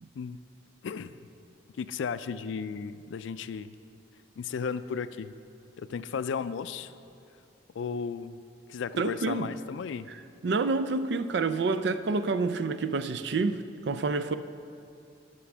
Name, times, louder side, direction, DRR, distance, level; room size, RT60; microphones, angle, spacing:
voice 1, 0.8-1.2 1.8-3.7 4.4-5.3 5.8-6.9 7.8-8.4 8.7-10.1, left 6 dB, 75° left, 13 dB, 0.3 m, -34 dB
voice 2, 9.0-9.5 10.4-14.3, right 4 dB, 60° right, 12 dB, 0.4 m, -28 dB
11.5 x 5.2 x 6.0 m, 2.5 s
head